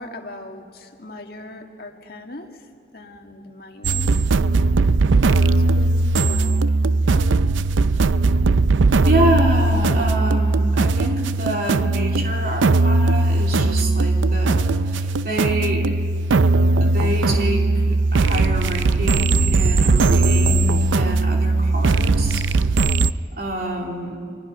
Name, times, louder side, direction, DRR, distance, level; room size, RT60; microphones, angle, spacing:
voice 1, 0.0-2.5 2.9-4.1 4.4-6.6 6.9-7.2, left 1 dB, 55° left, 3 dB, 1.9 m, -39 dB
sound 1, 3.8-23.1, right 3 dB, 85° right, 0.5 m, -18 dB
voice 2, 9.0-15.9 16.8-22.4 23.4-24.2, right 1 dB, 50° right, 0 dB, 3.1 m, -27 dB
29.5 x 23.0 x 5.8 m, 2.2 s
head